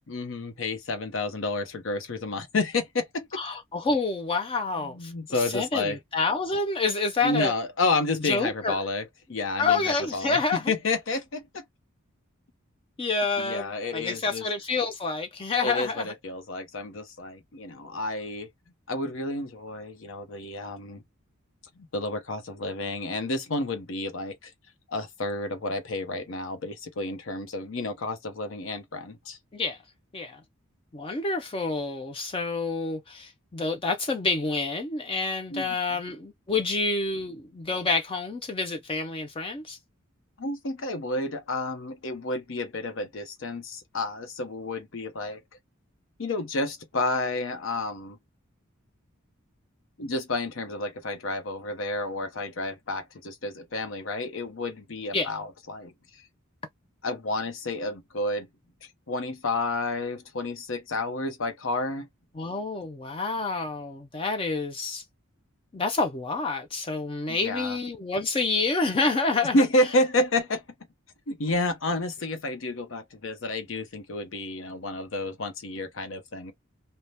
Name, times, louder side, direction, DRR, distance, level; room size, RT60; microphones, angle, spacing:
voice 1, 0.1-3.4 4.8-6.0 7.2-9.0 9.3-10.4 10.7-11.6 13.4-14.4 15.6-18.5 18.9-21.0 21.8-24.5 24.9-29.4 35.5-36.0 40.4-45.4 46.2-48.2 50.0-56.2 57.0-58.5 58.8-62.1 67.3-67.8 69.5-70.6 71.3-76.5, left 2 dB, 65° left, 0.8 m, -30 dB
voice 2, 3.3-7.5 8.2-8.8 9.6-10.6 13.0-16.1 29.5-29.8 30.1-30.4 30.9-39.8 55.1-55.3 62.4-65.0 65.7-69.6, left 3 dB, 25° left, 0.4 m, -28 dB
2.7 x 2.1 x 3.2 m
head